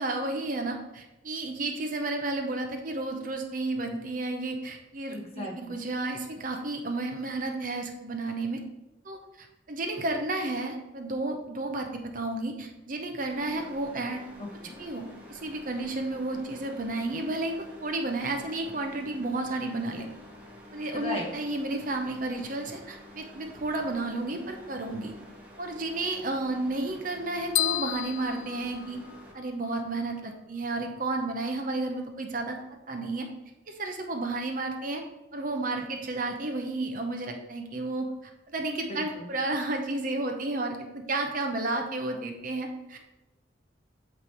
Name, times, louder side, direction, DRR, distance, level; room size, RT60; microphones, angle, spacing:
voice 1, 0.0-8.6 9.0-14.2 14.8-20.1 20.7-25.1 25.6-29.0 29.3-32.6 32.9-33.3 33.7-35.0 35.3-43.0, right 2 dB, 45° right, 4 dB, 0.7 m, -32 dB
voice 2, 5.1-5.8 14.4-14.8 20.9-21.3 38.9-39.3, left 1 dB, 30° left, 0 dB, 1.2 m, -37 dB
sound 1, 13.3-29.3, left 1 dB, 10° right, 1.1 m, -49 dB
sound 2, 27.6-29.5, left 13 dB, 90° left, 0.4 m, -31 dB
8.6 x 3.3 x 4.5 m, 0.95 s
head